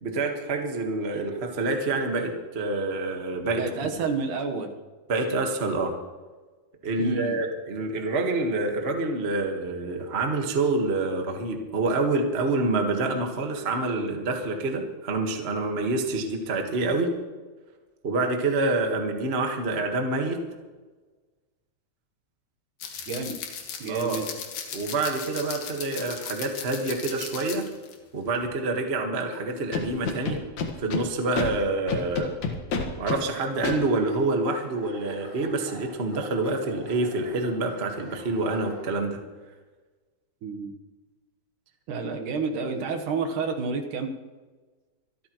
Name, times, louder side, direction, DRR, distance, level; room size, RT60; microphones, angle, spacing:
voice 1, 0.0-3.9 5.1-5.9 6.8-17.1 18.0-20.4 23.9-24.2 24.7-27.7 28.1-30.4 30.8-32.3 33.0-39.2, right 2 dB, 50° right, 3 dB, 0.7 m, -27 dB
voice 2, 3.5-4.7 7.0-7.4 23.1-23.4 23.8-24.3 40.4-40.7 41.9-44.1, right 4 dB, 70° right, 4 dB, 2.7 m, -29 dB
sound 1, 22.8-28.0 28.3-28.5, left 7 dB, 80° left, 3.2 m, -37 dB
Scratching (performance technique), 29.7-31.0 31.3-31.5 31.9-33.2 33.6-33.7, left 5 dB, 60° left, 2.8 m, -28 dB
sound 2, 33.4-38.9, left 1 dB, 25° left, 4.2 m, -46 dB
25.5 x 13.0 x 3.1 m, 1.3 s
omnidirectional pair, 3.8 m